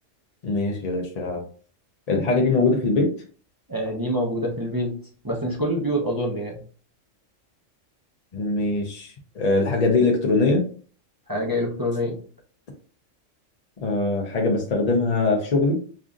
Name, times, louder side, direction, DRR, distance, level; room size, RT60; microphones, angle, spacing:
voice 1, 0.4-1.4 2.1-3.1 8.3-10.6 13.8-15.8, left 3 dB, 45° left, 1 dB, 0.5 m, -22 dB
voice 2, 3.7-4.9 5.2-6.6 11.3-12.2, equal, 25° right, -2 dB, 0.6 m, -26 dB
5.4 x 2.4 x 2.4 m, 0.42 s
omnidirectional pair, 1.3 m